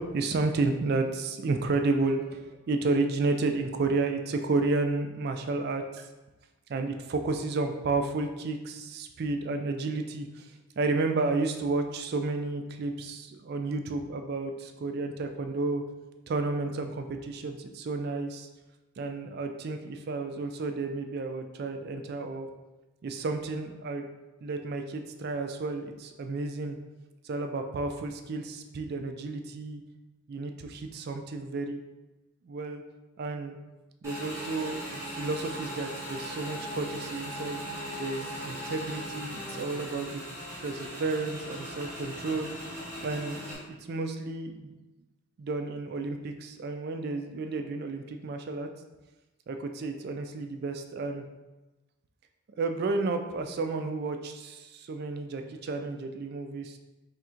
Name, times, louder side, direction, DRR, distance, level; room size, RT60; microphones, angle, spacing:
voice 1, 0.0-6.1 6.7-15.8 16.3-18.5 19.0-22.5 23.0-24.1 24.4-26.8 27.2-29.8 30.3-31.8 32.4-32.8 33.2-33.6 34.0-37.6 38.0-40.2 40.6-42.5 43.0-43.5 43.9-44.7 45.4-48.7 49.5-51.3 52.6-56.8, right 3 dB, 45° right, 6 dB, 0.3 m, -31 dB
Motorcycle / Engine, 34.0-43.5, equal, 15° right, 1.0 m, -39 dB
3.4 x 2.5 x 4.3 m, 1.1 s
head